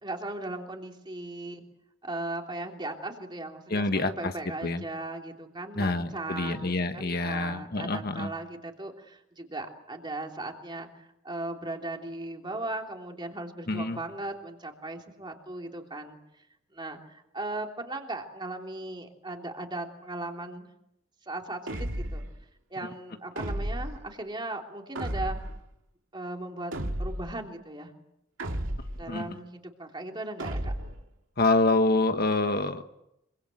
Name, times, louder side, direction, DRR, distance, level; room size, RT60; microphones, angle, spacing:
voice 1, 0.0-1.6 2.0-16.2 16.7-20.7 21.3-22.2 22.7-25.4 26.1-26.7 27.0-27.9 29.0-30.7, right 2 dB, 25° right, 2 dB, 3.2 m, -37 dB
voice 2, 3.7-4.3 4.6-4.8 5.8-8.3 13.7-14.0 29.1-29.3 31.4-32.8, left 2 dB, 50° left, 7 dB, 1.4 m, -26 dB
sound 1, 21.7-22.3 23.4-24.0 25.0-25.6 26.7-27.4 28.4-29.1 30.4-31.0, right 1 dB, 85° right, 2.5 m, -33 dB
26.0 x 24.0 x 7.9 m, 0.83 s
head